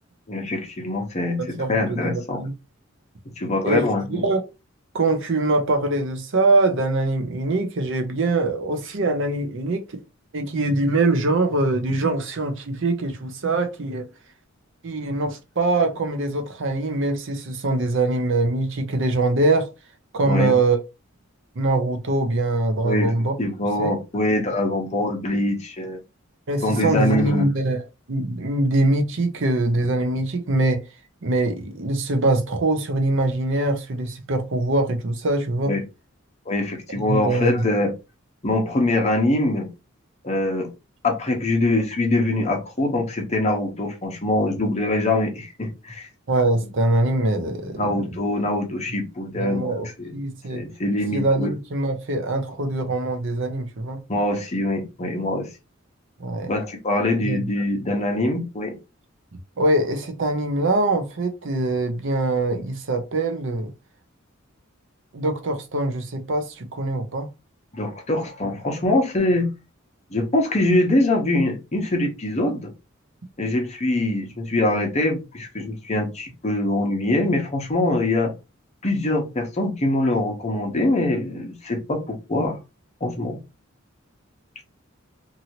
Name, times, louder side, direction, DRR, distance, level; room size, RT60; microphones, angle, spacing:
voice 1, 0.3-2.4 3.4-4.2 20.2-20.5 22.8-23.1 23.4-26.0 26.6-27.5 35.7-35.8 36.5-37.9 38.4-39.7 40.2-40.7 41.0-46.1 47.8-49.7 50.0-50.1 50.5-51.5 54.1-55.5 56.5-58.8 67.7-69.5 70.1-72.7 73.4-78.3 78.8-82.6 83.0-83.4, left 1 dB, 35° left, 0.9 m, -23 dB
voice 2, 1.6-2.5 3.6-4.4 4.9-10.0 10.3-14.1 14.8-19.7 20.1-20.8 21.6-23.3 23.8-23.9 26.5-27.8 28.1-30.8 31.2-35.8 37.1-37.9 46.3-48.1 49.4-49.9 50.1-50.6 51.1-54.0 56.2-56.5 57.2-57.5 59.6-63.7 65.1-67.3, right 2 dB, 65° right, 0.7 m, -23 dB
2.8 x 2.7 x 2.9 m
head